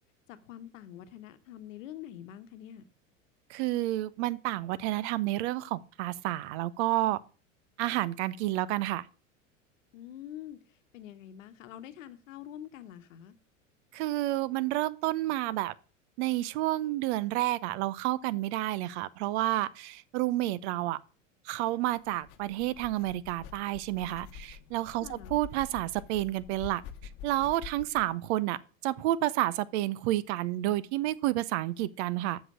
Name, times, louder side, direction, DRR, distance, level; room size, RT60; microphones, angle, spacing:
voice 1, 0.3-2.9 9.9-10.6 10.9-13.3 25.0-25.4, left 11 dB, 75° left, 1.1 m, -45 dB
voice 2, 3.5-7.2 7.8-9.1 13.9-15.7 16.2-21.0 21.4-26.8 27.2-32.4, right 15 dB, 60° right, 0.7 m, -30 dB
sound 1, 22.0-28.1, left 8 dB, 55° left, 1.0 m, -47 dB
7.6 x 6.2 x 6.4 m
hypercardioid pair, 90°, 39 cm